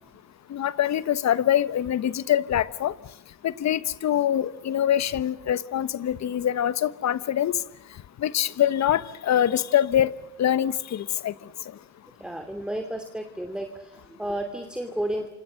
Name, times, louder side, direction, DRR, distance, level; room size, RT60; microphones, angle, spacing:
voice 1, 0.5-2.9 3.4-7.6 8.2-10.1 10.4-11.3, left 10 dB, 65° left, 1.2 m, -24 dB
voice 2, 12.2-15.3, right 1 dB, 5° right, 2.7 m, -32 dB
28.5 x 26.0 x 6.5 m
cardioid pair, 90°, 30 cm